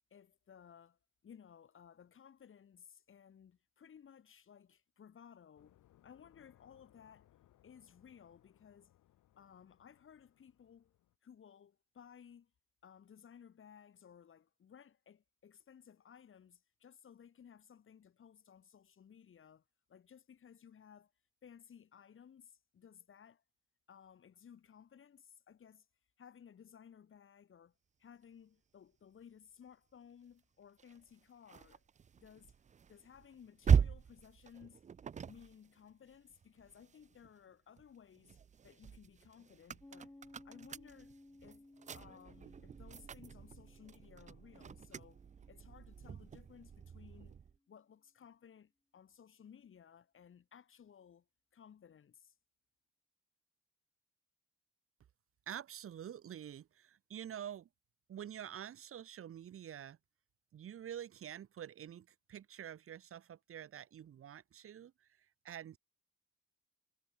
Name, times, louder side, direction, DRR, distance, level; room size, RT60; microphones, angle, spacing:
voice 1, 0.1-7.3 7.6-8.9 9.4-11.0 11.2-12.5 12.8-19.6 19.9-21.1 21.4-23.4 23.9-25.9 26.2-31.8 32.2-32.5 32.9-34.8 35.2-38.4 38.6-40.1 40.4-41.1 41.4-41.7 41.9-45.2 45.5-47.4 47.7-51.3 51.5-52.3, left 8 dB, 45° left, 1.2 m, -59 dB
sound 1, 5.6-11.2, left 13 dB, 80° left, 5.1 m, -69 dB
sound 2, 30.8-37.3 37.8-47.6, right 7 dB, 25° right, 0.4 m, -39 dB
Piano, 39.8-47.0, left 2 dB, 10° left, 1.4 m, -61 dB
voice 2, 55.5-57.7 58.1-60.0 60.5-65.8, right 10 dB, 50° right, 0.8 m, -47 dB
cardioid pair, 90°, 30 cm